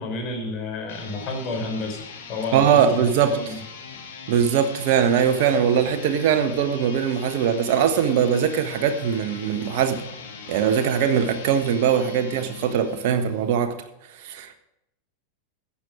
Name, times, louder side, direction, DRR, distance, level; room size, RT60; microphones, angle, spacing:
voice 1, 0.0-2.0 2.3-2.8 3.3-3.6, left 2 dB, 35° left, 3 dB, 3.9 m, -30 dB
sound 1, 0.8-13.6, left 5 dB, 55° left, 2.2 m, -41 dB
voice 2, 2.5-3.4 4.3-10.0 10.5-13.7 14.2-14.5, right 8 dB, 50° right, 7 dB, 1.4 m, -21 dB
14.0 x 8.9 x 5.0 m, 0.80 s
figure-of-eight pair, 90°, 0 cm